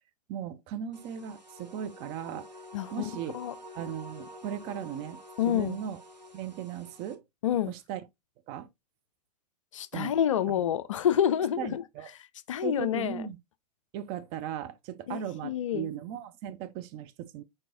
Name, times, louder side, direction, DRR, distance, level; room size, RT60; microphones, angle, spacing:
voice 1, 0.3-2.5 2.9-3.4 3.8-6.0 6.3-7.2 7.7-8.0 8.5-8.7 9.9-10.1 11.6-12.1 12.6-13.4 13.9-17.4, right 9 dB, 25° right, 0.5 m, -37 dB
sound 1, 0.9-7.1, left 1 dB, 90° right, 0.9 m, -48 dB
voice 2, 2.7-3.0 3.3-3.5 5.4-5.8 7.4-7.7 9.7-11.8 12.5-13.2 15.1-15.9, left 10 dB, 50° left, 0.4 m, -28 dB
4.8 x 4.5 x 2.4 m
figure-of-eight pair, 105°, 21 cm